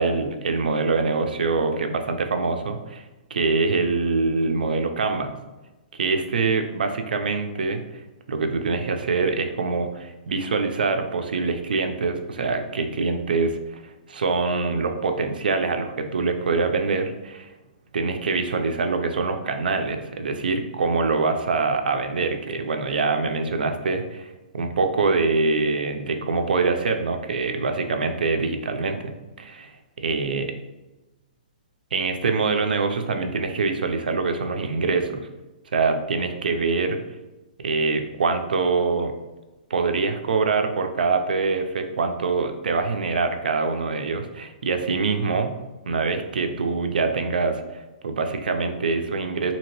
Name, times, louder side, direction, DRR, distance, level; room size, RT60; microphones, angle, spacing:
voice 1, 0.0-3.0 3.3-5.4 5.9-7.8 8.3-13.8 14.1-17.5 17.9-29.7 30.0-30.5 31.9-35.3 35.7-37.0 37.6-39.1 39.7-45.5 45.9-47.6 48.0-49.5, right 4 dB, 85° right, 6 dB, 0.4 m, -24 dB
2.8 x 2.8 x 2.9 m, 1.1 s
hypercardioid pair, 155°, 5 cm